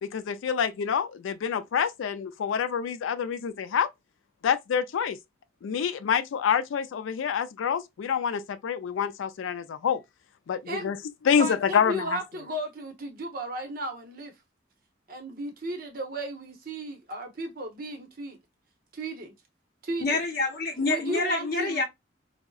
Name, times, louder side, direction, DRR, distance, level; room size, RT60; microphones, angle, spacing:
voice 1, 0.0-3.9 4.4-5.2 5.6-10.0 10.5-11.0 11.2-12.2, left 7 dB, 85° left, 0.3 m, -27 dB
voice 2, 11.3-14.3 15.1-18.4 18.9-19.3 19.8-20.2 20.8-21.8, right 1 dB, 45° right, 0.8 m, -34 dB
voice 3, 20.0-21.8, left 3 dB, 50° left, 0.6 m, -27 dB
3.6 x 2.0 x 2.3 m
head